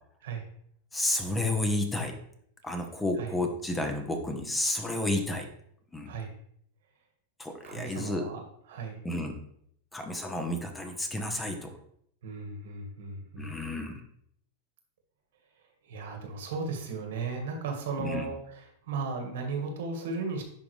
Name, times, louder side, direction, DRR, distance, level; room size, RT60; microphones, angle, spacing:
voice 1, 0.9-2.2 2.6-5.5 5.9-6.1 7.4-8.3 9.0-9.4 9.9-11.7 13.4-14.0 18.0-18.3, left 1 dB, 10° left, 5 dB, 0.9 m, -31 dB
voice 2, 7.6-9.0 12.2-13.5 15.8-20.4, right 4 dB, 75° right, 4 dB, 1.7 m, -36 dB
10.5 x 3.7 x 3.3 m, 0.68 s
supercardioid pair, 135°, 0 cm